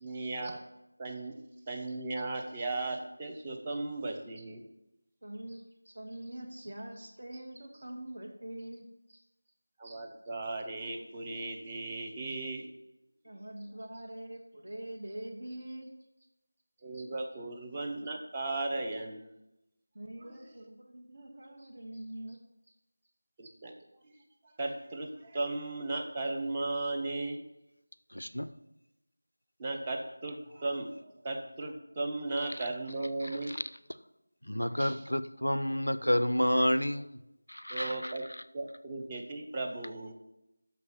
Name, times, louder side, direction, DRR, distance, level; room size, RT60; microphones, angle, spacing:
voice 1, 0.0-0.6 1.0-1.3 1.7-4.6 9.8-12.7 16.8-19.4 20.2-20.4 23.4-23.7 24.0-24.1 24.6-27.4 29.6-33.6 34.8-35.0 37.7-38.2 38.5-40.1, right 2 dB, 15° right, 0.7 m, -36 dB
voice 2, 5.2-9.2 13.2-15.9 19.9-22.4, right 1 dB, 55° right, 1.1 m, -44 dB
voice 3, 28.1-28.6 32.5-32.6 33.2-33.6 34.4-37.2 37.5-38.4, equal, 80° left, 0.5 m, -30 dB
6.5 x 5.3 x 7.1 m
figure-of-eight pair, 170°, 0 cm